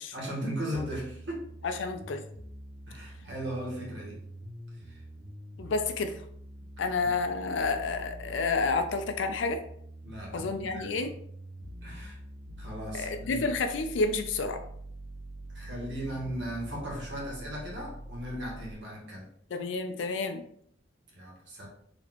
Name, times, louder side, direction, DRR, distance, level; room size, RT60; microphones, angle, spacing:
voice 1, 0.1-1.8 2.9-4.2 4.9-5.0 7.0-7.1 10.0-11.1 11.8-12.2 12.6-13.4 15.5-19.3 21.1-21.7, equal, 70° right, -3 dB, 1.5 m, -37 dB
sound 1, 0.7-18.7, right 1 dB, 30° right, 1.4 m, -45 dB
voice 2, 1.6-2.2 5.6-6.2 6.8-9.6 10.3-11.1 12.9-14.6 19.5-20.4, left 3 dB, 85° left, 7 dB, 0.4 m, -30 dB
4.1 x 3.0 x 2.9 m, 0.66 s
head